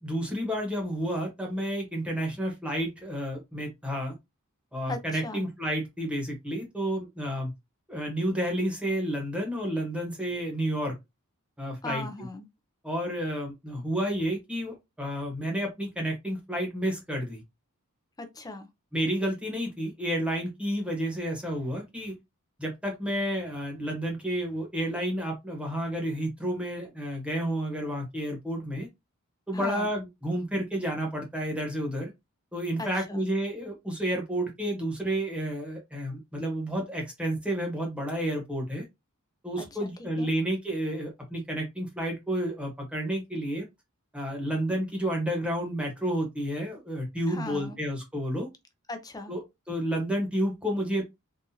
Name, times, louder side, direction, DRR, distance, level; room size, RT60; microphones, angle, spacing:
voice 1, 0.0-4.1 4.7-7.5 7.9-10.9 11.6-12.0 12.8-17.4 18.9-22.1 22.6-28.9 29.5-32.1 32.5-38.8 39.4-43.6 44.1-48.5 49.3-51.0, equal, 5° right, 1.1 m, -30 dB
voice 2, 4.9-5.4 11.8-12.5 18.2-18.7 29.5-29.9 32.8-33.2 39.6-39.9 40.2-40.3 47.3-47.8 48.9-49.3, left 3 dB, 15° left, 0.6 m, -38 dB
3.9 x 2.5 x 2.8 m
head